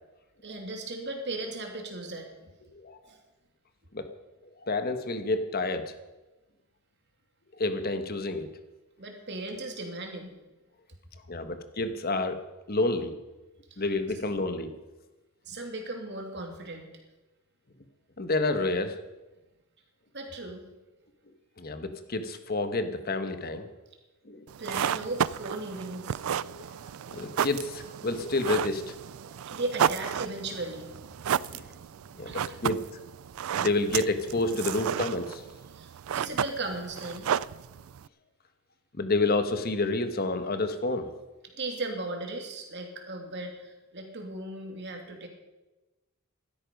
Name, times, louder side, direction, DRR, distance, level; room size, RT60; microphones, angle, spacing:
voice 1, 0.4-2.5 3.0-3.2 9.0-10.4 13.7-13.8 15.4-16.9 20.1-20.6 24.6-26.2 29.5-30.9 32.2-32.6 35.7-37.3 41.6-45.3, right 2 dB, 55° right, 3 dB, 2.7 m, -37 dB
voice 2, 4.6-5.9 7.5-8.5 11.3-12.4 12.7-13.1 13.8-14.7 18.2-18.9 21.6-23.7 24.2-24.5 26.5-26.7 27.1-28.9 31.5-31.6 32.1-32.8 33.6-35.4 39.0-41.1, left 2 dB, 45° left, 9 dB, 1.3 m, -29 dB
sound 1, 24.5-38.1, right 9 dB, 75° right, 0.4 m, -32 dB
15.5 x 12.5 x 5.3 m, 1.1 s
head